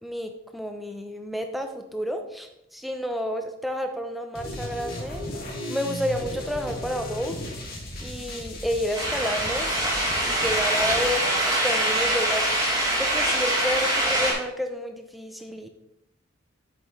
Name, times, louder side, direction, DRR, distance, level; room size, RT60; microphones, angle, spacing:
voice 1, 0.0-5.2 5.7-7.4 8.0-9.7 10.2-12.5 13.0-15.7, equal, ahead, 6 dB, 0.6 m, -30 dB
sound 1, 4.3-11.1, left 1 dB, 50° left, 2.2 m, -36 dB
sound 2, 8.9-14.3, right 1 dB, 20° right, 2.4 m, -24 dB
8.1 x 6.7 x 3.2 m, 0.82 s
head